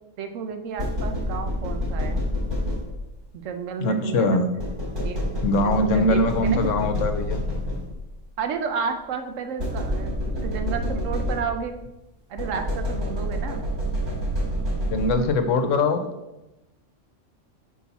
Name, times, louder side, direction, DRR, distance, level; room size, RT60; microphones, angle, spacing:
voice 1, 0.2-2.2 3.3-4.5 5.0-5.3 5.6-6.7 8.4-11.8 12.3-13.6, right 6 dB, 85° right, 7 dB, 1.0 m, -31 dB
sound 1, 0.8-3.2 4.6-8.2 9.6-11.8 12.4-15.4, equal, 60° right, 2.6 m, -28 dB
voice 2, 3.8-4.5 5.4-7.4 14.8-16.1, left 2 dB, 80° left, 8 dB, 1.0 m, -22 dB
5.8 x 4.6 x 4.1 m, 0.98 s
omnidirectional pair, 1.3 m